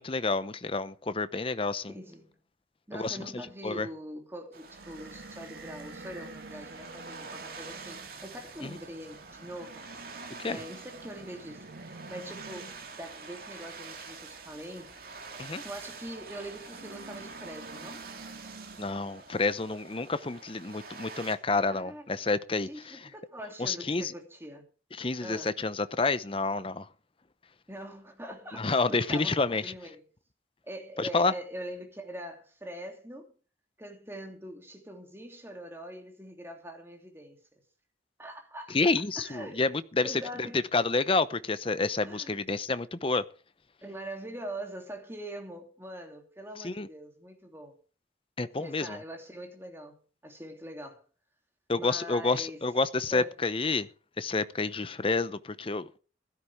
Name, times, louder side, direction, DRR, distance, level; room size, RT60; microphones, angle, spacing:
voice 1, 0.0-1.9 2.9-3.9 8.6-8.8 10.4-10.6 15.4-15.6 18.8-23.0 23.6-24.1 25.0-26.9 28.5-29.7 31.0-31.3 38.7-40.2 40.5-43.2 46.6-46.9 48.4-49.0 51.7-53.9 54.2-56.0, left 3 dB, 30° left, 0.7 m, -29 dB
voice 2, 1.9-2.4 2.9-9.9 10.5-14.9 15.6-18.0 21.7-22.0 22.6-24.7 25.2-25.6 27.7-30.0 30.7-33.3 33.8-37.6 38.2-39.7 40.0-40.6 42.0-42.4 43.8-47.8 48.6-51.0 51.7-52.6 53.1-53.3, right 1 dB, 15° right, 3.0 m, -43 dB
sound 1, 4.5-21.4, right 4 dB, 55° right, 2.8 m, -47 dB
sound 2, 4.6-19.2, right 3 dB, 75° right, 1.4 m, -50 dB
16.0 x 13.0 x 3.6 m
head